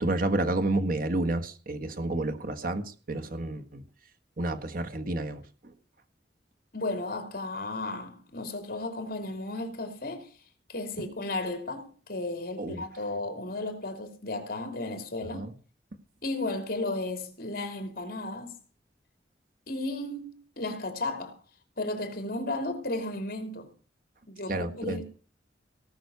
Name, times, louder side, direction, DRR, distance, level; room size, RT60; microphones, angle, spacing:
voice 1, 0.0-3.8 4.4-5.7 12.6-12.8 15.3-15.5 24.5-25.0, right 2 dB, 50° right, 1.6 m, -30 dB
voice 2, 6.7-10.3 10.7-15.5 16.2-18.5 19.7-21.4 21.8-23.7 24.3-25.0, left 2 dB, 55° left, 3.0 m, -34 dB
18.0 x 6.2 x 8.2 m
head